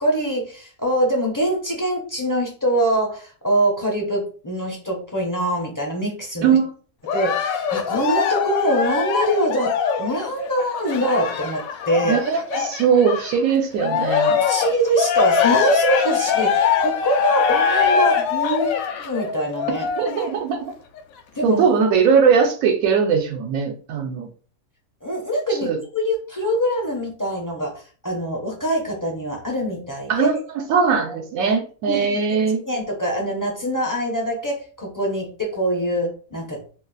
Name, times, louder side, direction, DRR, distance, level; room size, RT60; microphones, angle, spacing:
voice 1, 0.0-6.6 7.1-12.2 14.4-19.9 21.4-21.6 25.0-27.7 28.0-30.3 31.9-32.2 32.6-36.6, right 1 dB, 25° left, -1 dB, 0.4 m, -24 dB
Cheering, 7.1-13.4 13.8-20.4 21.0-21.1, left 7 dB, 75° left, 1.0 m, -22 dB
voice 2, 12.1-14.4 20.0-20.7 21.4-24.3 25.5-25.8 30.1-30.4 30.7-32.6, right 6 dB, 80° right, 2 dB, 1.0 m, -20 dB
2.5 x 2.4 x 3.8 m, 0.40 s
omnidirectional pair, 1.5 m